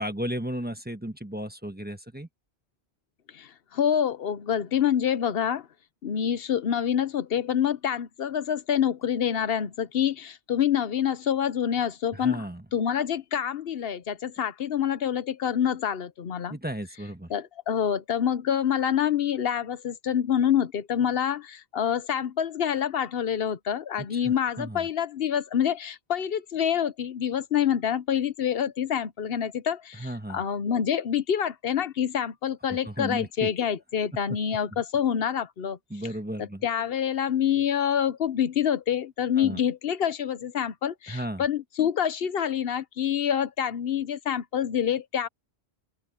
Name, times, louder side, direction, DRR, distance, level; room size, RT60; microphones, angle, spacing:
voice 1, 0.0-2.3 12.1-12.6 16.5-17.3 24.0-24.8 30.0-30.4 32.8-33.5 34.3-34.4 35.9-36.6 39.4-39.6 41.1-41.4, right 1 dB, 10° right, 1.2 m, -34 dB
voice 2, 3.3-5.7 6.0-12.4 12.7-16.6 17.3-35.8 36.4-45.3, left 9 dB, 65° left, 1.0 m, -27 dB
open air
omnidirectional pair, 1.1 m